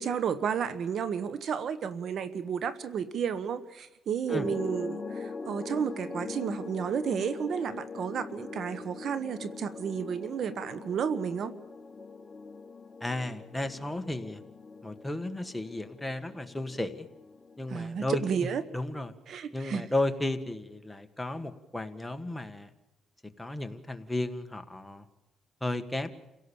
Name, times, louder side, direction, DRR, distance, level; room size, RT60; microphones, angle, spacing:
voice 1, 0.0-11.5 17.7-18.6 19.3-19.9, right 7 dB, 65° right, 13 dB, 1.4 m, -32 dB
sound 1, 4.3-18.3, left 4 dB, 35° left, 1.3 m, -43 dB
voice 2, 13.0-14.4 14.8-17.1 17.6-18.2 18.7-19.1 19.5-22.7 23.4-25.0 25.6-26.1, left 2 dB, 10° left, 7 dB, 1.8 m, -33 dB
29.0 x 17.5 x 7.2 m, 0.98 s
cardioid pair, 90°, 0 cm